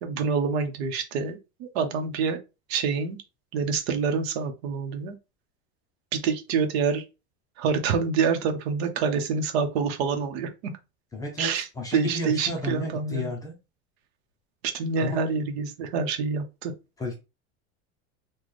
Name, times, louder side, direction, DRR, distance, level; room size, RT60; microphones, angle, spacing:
voice 1, 0.0-2.4 2.7-3.2 3.5-5.1 6.1-7.0 7.6-10.5 11.4-13.3 14.6-16.7, right 5 dB, 75° right, 0.8 m, -27 dB
voice 2, 11.1-11.5 11.8-13.5 15.0-15.2 17.0-17.1, left 1 dB, 10° left, 0.5 m, -32 dB
4.0 x 2.3 x 3.2 m
cardioid pair, 170°, 31 cm